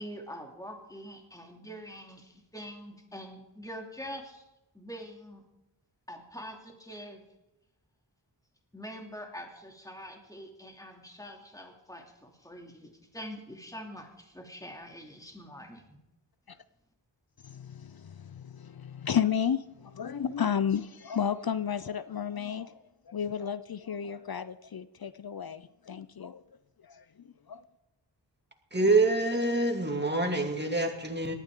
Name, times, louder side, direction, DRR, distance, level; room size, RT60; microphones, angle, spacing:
voice 1, 0.0-4.4 4.7-5.4 6.1-7.2 8.7-16.0, equal, 10° left, 2 dB, 2.8 m, -44 dB
voice 2, 17.4-26.4 26.8-27.6, left 8 dB, 55° left, 14 dB, 0.6 m, -33 dB
voice 3, 28.7-31.3, right 2 dB, 25° right, 3 dB, 2.5 m, -26 dB
18.5 x 12.5 x 3.8 m, 0.92 s
wide cardioid pair, 55°, 44 cm